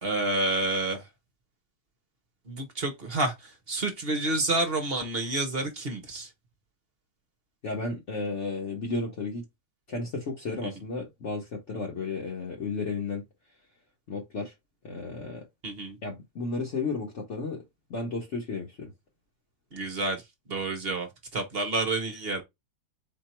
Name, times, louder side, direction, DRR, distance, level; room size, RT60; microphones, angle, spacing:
voice 1, 0.0-1.1 2.5-6.3 10.6-10.7 15.6-16.0 19.7-20.2 20.5-22.4, right 2 dB, 40° right, 1.1 m, -29 dB
voice 2, 7.6-9.4 9.9-13.2 14.1-14.5 14.8-15.4 16.0-17.6 17.9-18.9, left 3 dB, 50° left, 1.3 m, -33 dB
4.4 x 2.7 x 4.3 m
omnidirectional pair, 1.7 m